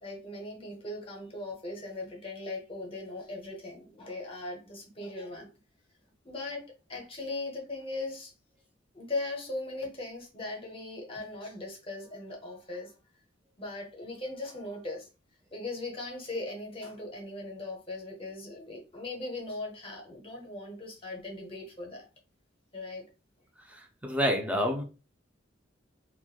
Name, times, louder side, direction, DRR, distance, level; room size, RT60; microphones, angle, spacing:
voice 1, 0.0-5.5 6.2-8.3 8.9-12.9 13.6-15.1 15.5-22.1 22.7-23.1, left 2 dB, 30° left, 0.7 m, -39 dB
voice 2, 23.7-24.8, equal, 5° right, 0.4 m, -28 dB
3.0 x 2.2 x 2.3 m
head